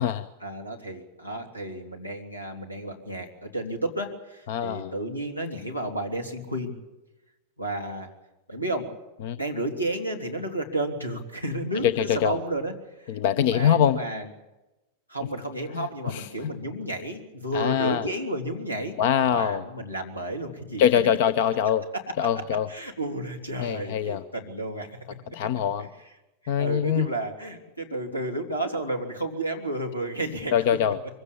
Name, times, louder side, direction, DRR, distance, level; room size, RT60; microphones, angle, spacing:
voice 1, 0.4-6.7 7.6-8.1 8.5-8.9 9.4-14.3 15.1-19.0 19.2-20.9 21.9-22.0 22.3-22.4 22.7-25.0 25.8-25.9 26.4-30.8, right 1 dB, 90° left, 3 dB, 3.1 m, -32 dB
voice 2, 4.5-4.9 9.2-9.4 11.8-12.4 13.1-14.0 15.7-16.5 17.5-18.0 19.0-19.6 20.8-21.9 22.2-22.7 23.6-24.2 25.3-25.9 26.5-27.1 30.5-31.0, left 9 dB, 50° left, 15 dB, 0.7 m, -23 dB
24.0 x 16.0 x 8.7 m, 1.0 s
figure-of-eight pair, 90°, 0 cm